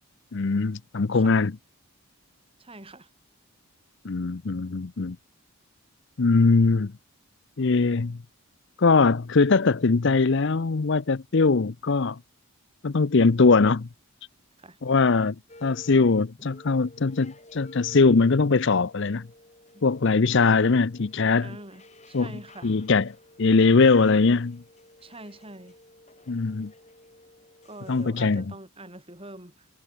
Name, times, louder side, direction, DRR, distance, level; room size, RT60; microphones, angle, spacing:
voice 1, 0.3-1.5 4.0-5.2 6.2-6.9 7.6-8.2 8.8-12.2 12.8-13.9 14.8-15.4 15.6-19.3 19.8-21.6 22.1-22.3 22.6-24.6 26.3-26.7 27.9-28.4, left 4 dB, 55° left, 0.6 m, -21 dB
voice 2, 2.6-3.1 14.6-14.8 19.7-19.8 21.4-22.8 25.0-25.8 27.6-29.7, right 2 dB, 25° right, 4.7 m, -45 dB
sound 1, 15.5-16.1 16.4-28.1, left 1 dB, 30° left, 7.3 m, -52 dB
head